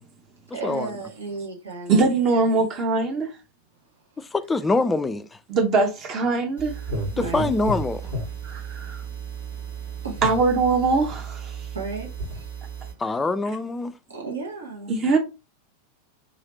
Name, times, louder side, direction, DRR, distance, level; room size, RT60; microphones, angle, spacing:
voice 1, 0.5-2.6 7.2-7.5 8.0-8.1 10.0-10.2 11.7-12.5 14.1-14.9, right 4 dB, 75° right, 1.5 m, -34 dB
voice 2, 1.9-3.3 5.5-6.7 8.4-9.0 10.2-11.6 14.9-15.2, right 4 dB, 30° right, 0.8 m, -22 dB
voice 3, 4.5-5.2 7.3-8.0 13.0-13.9, left 3 dB, 10° left, 0.3 m, -24 dB
sound 1, 6.6-12.9, right 3 dB, 90° right, 2.3 m, -33 dB
3.9 x 3.2 x 2.8 m
figure-of-eight pair, 90°, 0 cm